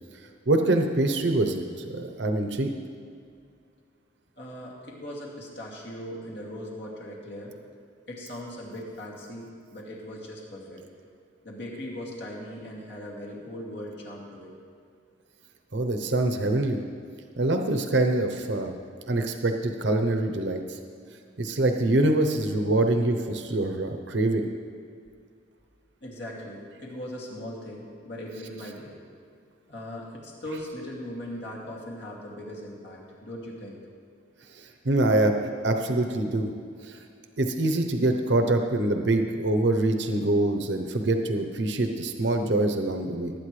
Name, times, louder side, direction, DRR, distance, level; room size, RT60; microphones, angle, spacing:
voice 1, 0.5-2.7 15.7-16.8 17.4-18.7 19.1-20.8 21.4-24.5 34.6-35.3 35.6-36.5 36.8-37.0 37.4-43.3, right 2 dB, 60° right, 5 dB, 0.8 m, -25 dB
voice 2, 4.4-7.5 8.1-10.8 11.4-14.5 26.0-29.0 29.7-33.8, equal, 60° left, -3 dB, 2.5 m, -39 dB
19.5 x 9.1 x 3.3 m, 2.3 s
head